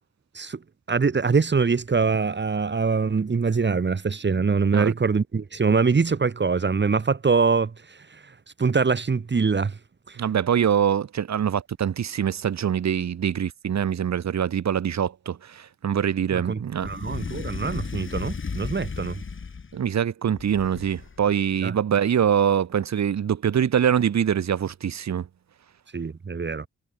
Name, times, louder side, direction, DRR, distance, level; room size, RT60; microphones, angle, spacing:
voice 1, 0.9-8.2 8.6-9.8 10.1-10.2 16.3-19.2 21.6-21.7 25.9-26.7, right 5 dB, 35° right, 1.8 m, -24 dB
voice 2, 10.2-16.9 19.7-25.3, right 8 dB, 60° right, 1.3 m, -24 dB
sound 1, 16.8-19.8 20.4-21.3, left 5 dB, 40° left, 2.6 m, -34 dB
cardioid pair, 95°, 31 cm